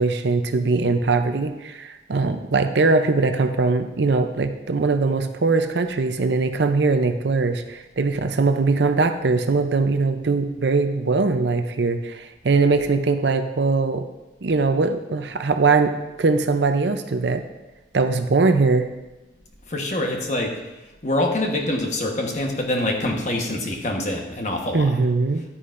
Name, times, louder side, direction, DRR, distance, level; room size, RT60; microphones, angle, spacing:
voice 1, 0.0-14.0 14.4-17.4 17.9-18.9 24.7-25.4, right 3 dB, 65° right, 8 dB, 0.6 m, -21 dB
voice 2, 19.7-20.5 21.0-24.9, left 1 dB, 40° left, 1 dB, 1.2 m, -25 dB
9.9 x 9.7 x 2.6 m, 1.0 s
head